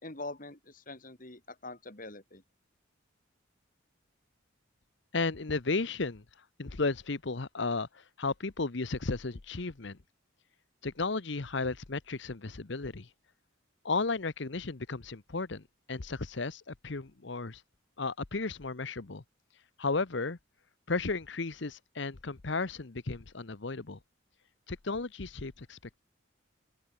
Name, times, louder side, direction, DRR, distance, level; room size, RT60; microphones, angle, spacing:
voice 1, 0.0-2.4, left 2 dB, 40° left, 3.3 m, -44 dB
voice 2, 5.1-6.2 6.6-10.0 10.8-13.1 13.8-17.6 18.0-19.2 19.8-20.4 20.9-24.0 24.7-26.0, left 3 dB, 60° left, 1.0 m, -34 dB
head